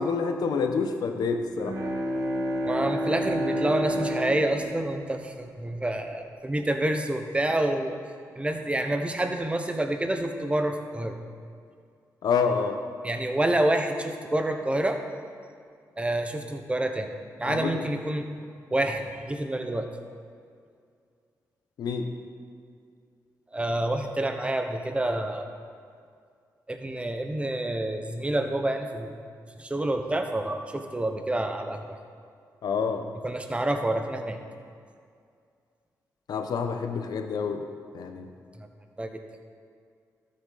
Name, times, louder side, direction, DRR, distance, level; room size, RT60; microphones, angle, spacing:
voice 1, 0.0-1.8 12.2-12.8 17.4-17.7 21.8-22.2 32.6-33.1 36.3-37.6 37.9-38.3, left 5 dB, 75° left, 6 dB, 0.9 m, -27 dB
Bowed string instrument, 1.5-6.1, equal, 55° right, 1.6 m, -30 dB
voice 2, 2.7-8.0 8.4-11.2 13.0-15.0 16.0-17.1 17.4-18.3 18.7-19.9 23.5-25.5 26.7-29.1 29.6-32.0 33.2-34.4 38.6-38.7 39.0-39.1, right 1 dB, 15° right, 5 dB, 1.0 m, -28 dB
12.5 x 7.6 x 4.1 m, 2.2 s
cardioid pair, 70°, 7 cm